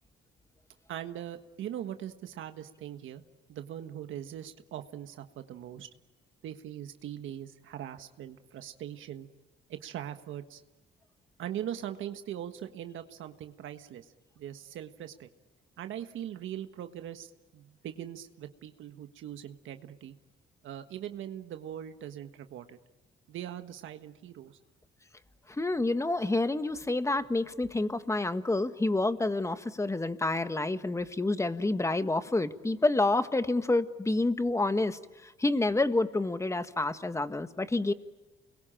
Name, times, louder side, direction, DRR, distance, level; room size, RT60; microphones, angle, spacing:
voice 1, 0.9-3.2 3.5-5.9 6.4-9.3 9.7-10.6 11.4-15.3 15.8-20.1 20.6-22.8 23.3-24.6, right 11 dB, 80° right, 8 dB, 1.5 m, -41 dB
voice 2, 25.5-37.9, left 2 dB, 15° left, 11 dB, 1.5 m, -28 dB
29.5 x 22.0 x 9.0 m, 1.2 s
cardioid pair, 90°, 20 cm